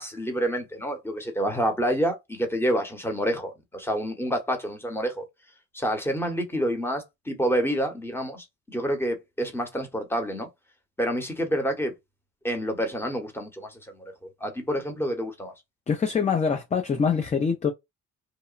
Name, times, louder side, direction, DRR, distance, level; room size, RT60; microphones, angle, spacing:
voice 1, 0.0-5.3 5.7-10.5 11.0-11.9 12.4-14.1 14.4-15.5, equal, 10° left, 0.9 m, -28 dB
voice 2, 15.9-17.7, left 6 dB, 25° left, 0.5 m, -24 dB
2.9 x 2.1 x 2.4 m
cardioid pair, 90°, 30 cm